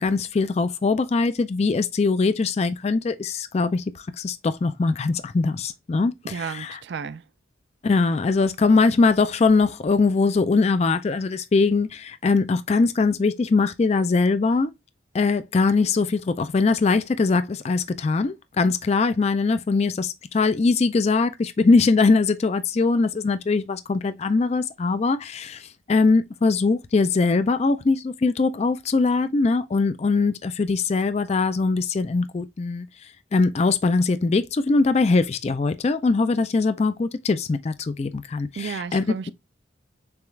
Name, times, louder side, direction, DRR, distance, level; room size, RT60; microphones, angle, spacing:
voice 1, 0.0-6.8 7.8-14.7 15.1-32.9 33.3-39.0, left 4 dB, 30° left, 0.3 m, -22 dB
voice 2, 6.2-7.3 38.6-39.3, right 6 dB, 55° right, 0.3 m, -33 dB
6.8 x 2.4 x 3.1 m
head